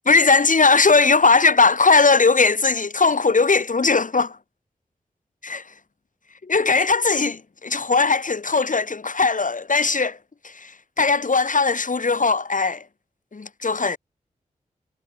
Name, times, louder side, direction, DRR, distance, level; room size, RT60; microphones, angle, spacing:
voice 1, 0.1-4.4 5.4-5.6 6.4-10.2 10.4-12.8 13.3-14.0, left 4 dB, 60° left, 7.2 m, -19 dB
cardioid pair, 40°, 15 cm